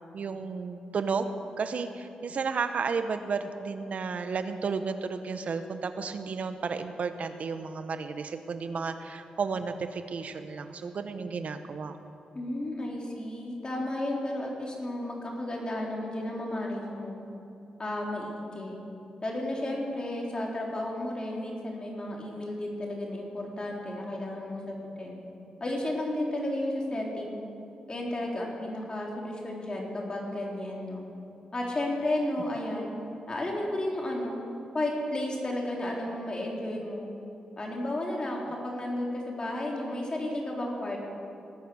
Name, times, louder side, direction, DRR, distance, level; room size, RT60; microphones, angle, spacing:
voice 1, 0.1-12.0, right 5 dB, 60° right, 9 dB, 1.0 m, -33 dB
voice 2, 12.3-17.2 17.8-18.8 19.2-25.2 25.6-27.4 27.9-31.0 31.5-32.9 33.3-34.4 34.7-37.1 37.6-41.0, left 1 dB, 35° left, -2 dB, 3.6 m, -33 dB
19.0 x 9.5 x 6.4 m, 2.9 s
cardioid pair, 65°, 3 cm